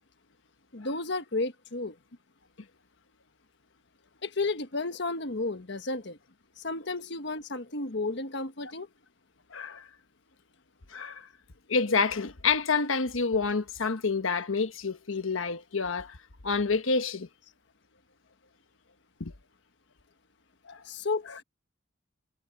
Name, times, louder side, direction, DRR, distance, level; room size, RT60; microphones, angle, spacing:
voice 1, 0.7-2.0 4.2-6.2 6.6-8.9 20.8-21.4, left 3 dB, 60° left, 1.4 m, -32 dB
voice 2, 9.5-9.9 10.9-11.3 11.7-16.2 16.4-17.3 19.2-19.3 20.7-20.8, left 4 dB, 80° left, 1.2 m, -28 dB
head